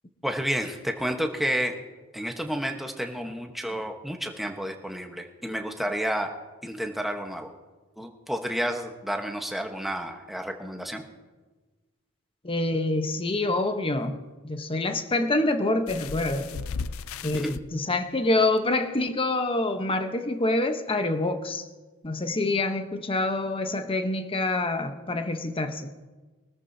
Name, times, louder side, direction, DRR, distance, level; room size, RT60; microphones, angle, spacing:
voice 1, 0.2-1.7 2.1-6.3 6.6-7.5 8.0-11.0 17.3-17.6, equal, ahead, 1.1 m, -30 dB
voice 2, 12.4-14.2 14.4-16.6 17.2-21.6 22.0-25.9, left 2 dB, 25° left, 0.9 m, -26 dB
sound 1, 15.9-17.6 18.6-18.7 19.1-19.2, left 5 dB, 70° left, 0.4 m, -35 dB
23.5 x 13.5 x 2.8 m
head